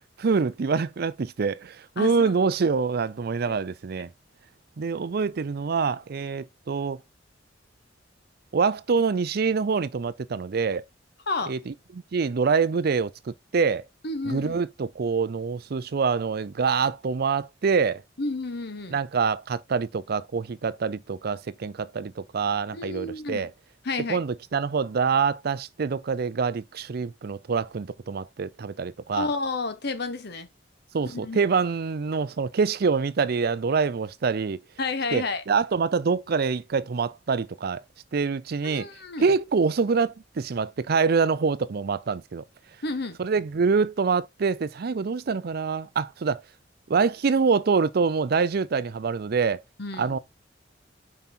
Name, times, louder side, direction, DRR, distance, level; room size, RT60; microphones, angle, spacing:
voice 1, 0.2-4.1 4.8-7.0 8.5-10.8 11.5-13.8 14.2-18.0 18.9-23.5 24.1-29.3 30.9-34.6 35.1-37.8 38.1-38.9 39.2-42.4 43.2-46.4 46.9-49.6 50.0-50.2, right 5 dB, 55° right, 0.5 m, -25 dB
voice 2, 2.0-2.3 11.3-11.5 14.0-14.6 18.2-19.0 22.7-23.5 23.8-24.2 29.1-30.5 31.1-31.4 34.8-35.4 38.6-39.3 42.8-43.2 49.8-50.2, left 3 dB, 60° left, 1.1 m, -31 dB
5.6 x 5.3 x 4.3 m
head